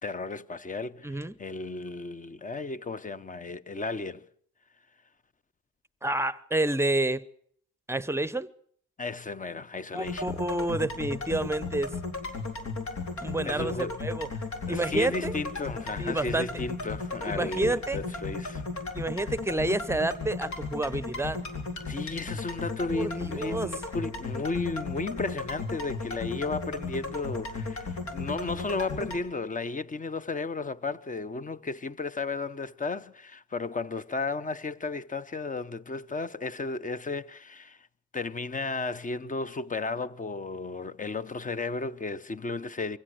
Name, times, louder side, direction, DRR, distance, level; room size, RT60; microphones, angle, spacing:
voice 1, 0.0-4.2 9.0-10.3 13.4-14.0 14.7-18.6 21.9-37.9 38.1-43.0, left 3 dB, 25° left, 0.9 m, -34 dB
voice 2, 1.0-1.3 6.0-7.2 7.9-8.5 9.9-12.0 13.2-14.3 14.7-15.3 16.0-16.5 17.3-18.0 18.9-21.4 22.9-23.7, right 2 dB, 10° right, 0.8 m, -29 dB
sound 1, 10.0-29.2, left 3 dB, 70° left, 4.2 m, -35 dB
23.5 x 16.5 x 7.9 m
cardioid pair, 90°, 30 cm